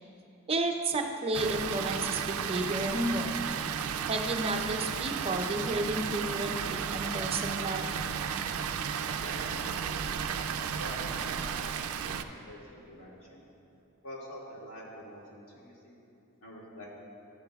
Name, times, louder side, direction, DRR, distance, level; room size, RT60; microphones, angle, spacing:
voice 1, 0.5-3.3 4.1-7.9, right 2 dB, 25° right, 3 dB, 0.6 m, -32 dB
Water, 1.3-12.2, right 7 dB, 75° right, 0.4 m, -33 dB
voice 2, 9.2-10.0 10.8-13.4 14.0-15.9 16.4-16.9, equal, 65° left, -5 dB, 2.2 m, -46 dB
13.5 x 10.5 x 2.3 m, 2.8 s
head